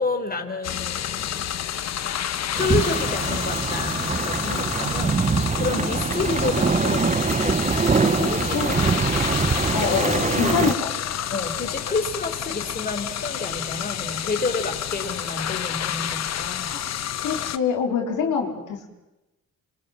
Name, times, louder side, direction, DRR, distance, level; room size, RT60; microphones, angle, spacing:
voice 1, 0.0-1.4 2.5-8.8 10.0-10.6 11.3-16.7, left 3 dB, 30° left, 5 dB, 4.0 m, -30 dB
sound 1, 0.6-17.6, left 10 dB, 60° left, 1.2 m, -29 dB
sound 2, 2.6-10.7, right 5 dB, 25° right, 1.0 m, -23 dB
voice 2, 8.2-8.7 9.7-11.1 16.6-16.9 17.2-18.9, left 6 dB, 85° left, 2 dB, 4.3 m, -26 dB
28.0 x 24.5 x 7.4 m, 0.99 s
cardioid pair, 90°, 30 cm